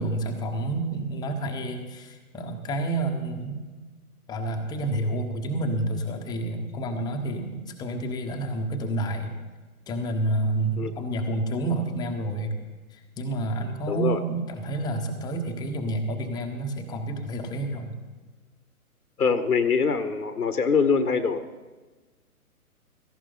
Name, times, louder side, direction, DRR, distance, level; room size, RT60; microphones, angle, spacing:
voice 1, 0.0-3.6 4.3-9.3 9.9-12.5 12.9-18.0, right 2 dB, 10° left, 4 dB, 1.0 m, -29 dB
voice 2, 13.9-14.2 19.2-21.5, left 5 dB, 85° left, 10 dB, 1.3 m, -23 dB
17.0 x 15.0 x 3.9 m, 1.3 s
hypercardioid pair, 135°, 44 cm